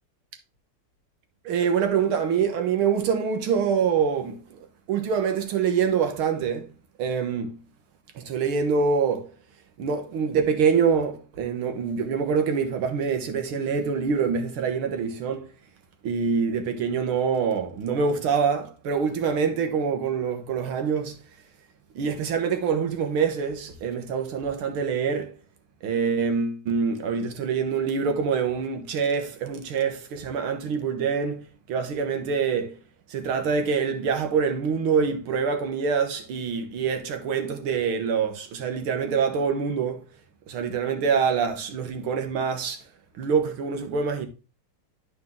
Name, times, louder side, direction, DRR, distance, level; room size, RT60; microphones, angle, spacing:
voice 1, 1.5-6.7 7.0-7.6 8.2-9.3 9.8-15.5 16.0-21.2 22.0-25.3 25.8-32.8 33.1-40.0 40.5-42.8 43.2-44.3, right 6 dB, 75° right, 2.0 m, -25 dB
11.0 x 4.7 x 3.6 m
omnidirectional pair, 2.4 m